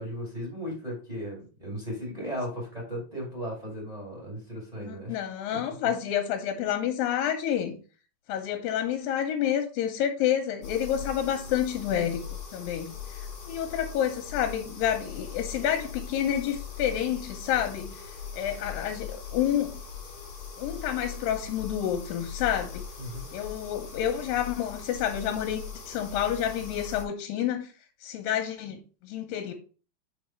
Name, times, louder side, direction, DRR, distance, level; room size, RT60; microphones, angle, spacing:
voice 1, 0.0-5.2 5.5-5.9 23.0-23.3, equal, 20° right, 1.2 m, -36 dB
voice 2, 4.8-7.8 8.3-12.2 12.5-19.7 20.6-22.8 23.3-27.7 28.0-29.5, left 10 dB, 80° left, 2.1 m, -29 dB
sound 1, 10.6-27.0, left 6 dB, 50° left, 1.6 m, -40 dB
5.4 x 4.7 x 4.3 m
omnidirectional pair, 4.7 m